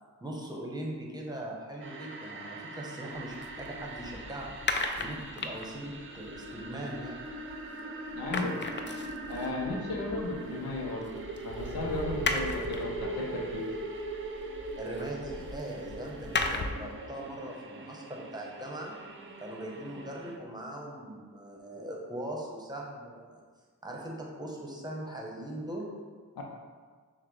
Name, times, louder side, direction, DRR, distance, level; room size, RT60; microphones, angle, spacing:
voice 1, 0.2-4.5 5.0-7.2 14.7-18.9 19.4-23.4 23.8-25.9, right 1 dB, 10° right, -2 dB, 1.0 m, -40 dB
sound 1, 1.8-20.4, right 2 dB, 35° right, 0.6 m, -41 dB
sound 2, 3.1-7.8 8.1-16.9, left 3 dB, 35° left, 0.4 m, -37 dB
voice 2, 8.1-8.6 9.3-13.7 26.4-26.5, left 2 dB, 90° left, 0 dB, 0.7 m, -35 dB
5.9 x 2.2 x 3.2 m, 1.5 s
cardioid pair, 40°, 34 cm